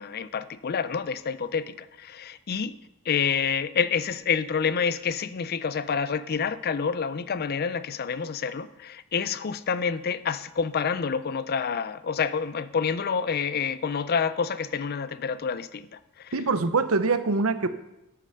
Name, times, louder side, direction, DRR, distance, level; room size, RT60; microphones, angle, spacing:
voice 1, 0.0-2.8 3.1-16.3, left 6 dB, 50° left, 0.5 m, -28 dB
voice 2, 16.3-17.7, right 3 dB, 90° right, 0.8 m, -24 dB
8.5 x 8.3 x 5.7 m
head